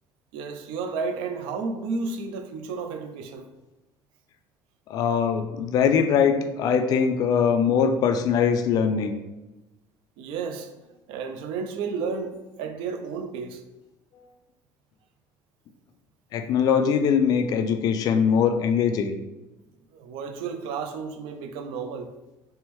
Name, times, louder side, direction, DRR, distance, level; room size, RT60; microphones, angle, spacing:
voice 1, 0.3-3.5 10.2-10.7 11.1-13.6 19.9-22.1, right 5 dB, 75° right, 0.5 m, -32 dB
voice 2, 4.9-9.1 16.3-19.1, left 7 dB, 45° left, 0.4 m, -22 dB
3.4 x 3.0 x 3.0 m
cardioid pair, 160°, 9 cm